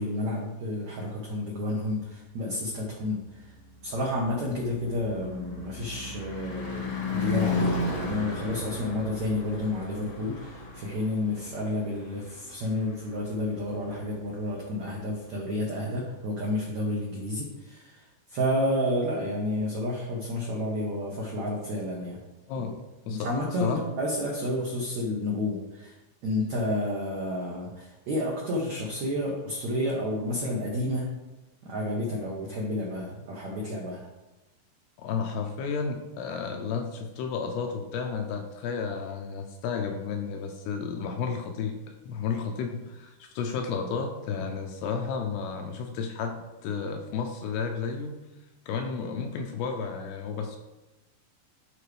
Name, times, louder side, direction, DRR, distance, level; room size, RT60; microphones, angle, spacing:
voice 1, 0.0-3.5 3.8-22.2 22.6-22.7 23.1-25.9 26.2-31.1 31.6-34.1, left 1 dB, 80° right, -3 dB, 1.6 m, -30 dB
Car passing by / Truck / Engine, 3.4-13.7, left 3 dB, 55° left, 1.5 m, -34 dB
voice 2, 22.5-23.3 23.6-23.8 35.0-48.2 48.7-50.6, left 5 dB, 80° left, 4 dB, 2.5 m, -32 dB
13.0 x 4.7 x 3.4 m, 1.0 s
omnidirectional pair, 5.1 m